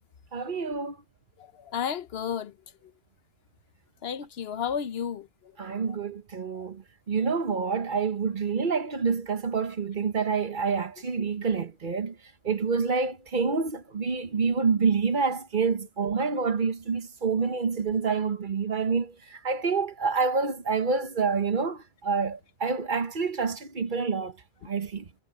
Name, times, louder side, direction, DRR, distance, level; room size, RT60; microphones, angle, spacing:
voice 1, 0.3-1.0 5.6-12.2 12.4-24.4 24.6-25.1, right 5 dB, 55° right, 1.2 m, -27 dB
voice 2, 1.4-2.5 2.8-2.9 4.0-5.8 6.6-6.7, left 8 dB, 75° left, 1.0 m, -33 dB
omnidirectional pair, 1.0 m